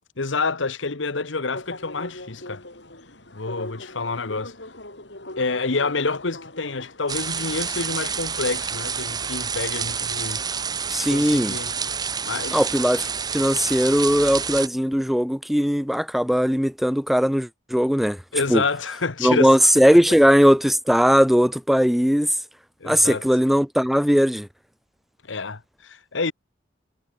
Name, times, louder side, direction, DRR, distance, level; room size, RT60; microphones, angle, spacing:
voice 1, 0.2-2.6 3.3-4.5 5.4-10.4 11.0-11.7 12.2-12.6 18.3-19.5 22.8-23.2 25.3-26.3, left 4 dB, 80° left, 1.3 m, -28 dB
sound 1, 1.5-9.5, left 1 dB, 65° left, 6.7 m, -41 dB
sound 2, 7.1-14.7, right 6 dB, 20° right, 0.8 m, -28 dB
voice 2, 10.9-11.6 12.5-18.2 18.5-18.6 19.2-22.3 22.8-24.5, equal, ahead, 0.4 m, -19 dB
head